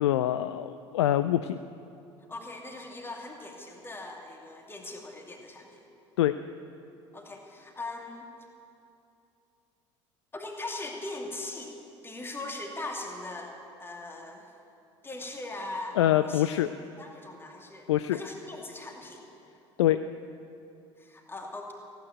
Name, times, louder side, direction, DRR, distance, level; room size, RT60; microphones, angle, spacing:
voice 1, 0.0-1.6 6.2-6.3 16.0-16.7 17.9-18.2 19.8-20.0, left 12 dB, 65° left, 11 dB, 0.4 m, -24 dB
voice 2, 2.3-5.8 7.1-8.3 10.3-11.7 12.0-13.5 13.8-14.5 15.0-16.5 16.8-19.2 21.0-21.7, left 2 dB, 15° left, 1 dB, 2.4 m, -40 dB
16.0 x 9.2 x 9.2 m, 2.7 s
figure-of-eight pair, 65°, 15 cm